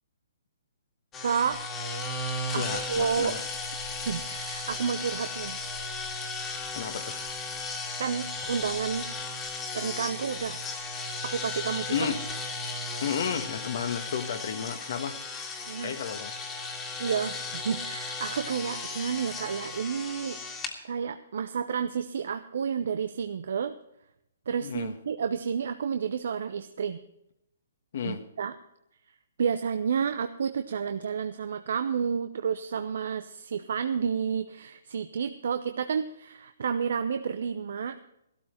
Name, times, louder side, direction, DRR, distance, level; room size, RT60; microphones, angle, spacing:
sound 1, 1.1-20.7, left 3 dB, 15° left, 2.0 m, -35 dB
voice 1, 1.2-1.6 2.5-3.4 4.1-5.6 8.0-9.1 9.7-10.6 11.2-12.1 15.7-15.9 17.0-20.4 20.8-23.7 24.5-27.0 28.0-28.5 29.4-38.0, right 6 dB, 65° right, 9 dB, 0.8 m, -30 dB
voice 2, 2.5-3.4 6.7-7.2 11.9-12.2 13.0-15.2 15.8-16.3 24.6-24.9 27.9-28.2, left 7 dB, 60° left, 6 dB, 1.3 m, -32 dB
14.5 x 13.0 x 4.4 m, 0.80 s
hypercardioid pair, 150°, 0 cm